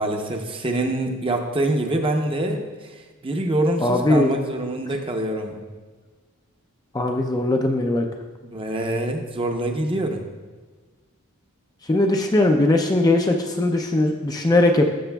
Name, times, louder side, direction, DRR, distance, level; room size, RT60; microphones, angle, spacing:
voice 1, 0.0-5.6 8.4-10.2, right 1 dB, 25° right, 4 dB, 0.7 m, -25 dB
voice 2, 3.8-4.3 6.9-8.1 11.9-14.9, left 2 dB, 15° left, 3 dB, 0.4 m, -19 dB
12.5 x 6.9 x 2.3 m, 1.3 s
head